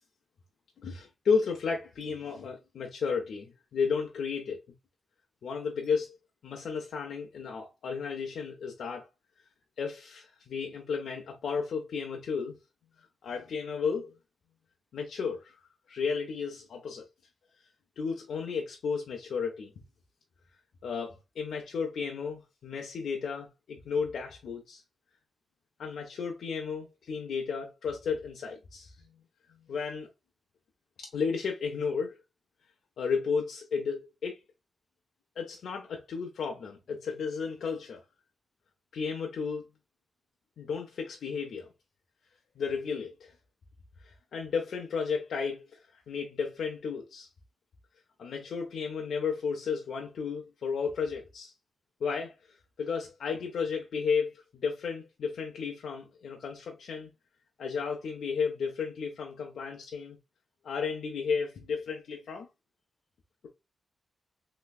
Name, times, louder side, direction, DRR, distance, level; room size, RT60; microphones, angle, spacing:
voice 1, 0.8-4.6 5.4-6.2 6.4-9.1 9.8-12.5 13.2-14.1 14.9-15.6 15.9-17.0 18.0-19.7 20.8-24.8 25.8-28.9 29.7-30.1 31.0-32.2 33.0-34.4 35.4-38.0 38.9-39.6 40.6-41.7 42.6-43.3 44.3-45.7 46.1-47.3 48.2-51.5 52.0-52.3 52.8-57.1 57.6-60.2 60.6-62.5, left 5 dB, 90° left, 0.6 m, -33 dB
3.3 x 3.0 x 2.3 m
wide cardioid pair, 100°, 0 cm